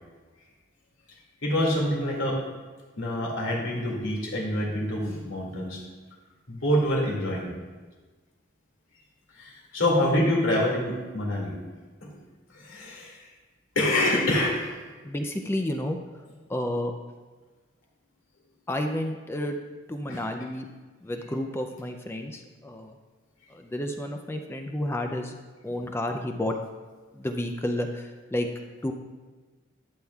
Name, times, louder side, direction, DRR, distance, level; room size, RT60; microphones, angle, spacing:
voice 1, 1.4-2.4 3.0-5.8 6.5-7.5 9.4-11.6 12.0-12.2 12.5-13.3 13.8-14.7 20.1-20.2, left 1 dB, 75° left, -3 dB, 2.1 m, -26 dB
voice 2, 15.0-16.0 16.5-16.9 18.7-19.6 19.9-20.7 21.0-23.0 23.5-25.3 25.6-26.5 27.1-28.5 28.8-28.9, left 1 dB, 10° left, 4 dB, 0.4 m, -31 dB
11.5 x 7.1 x 2.3 m, 1.3 s
head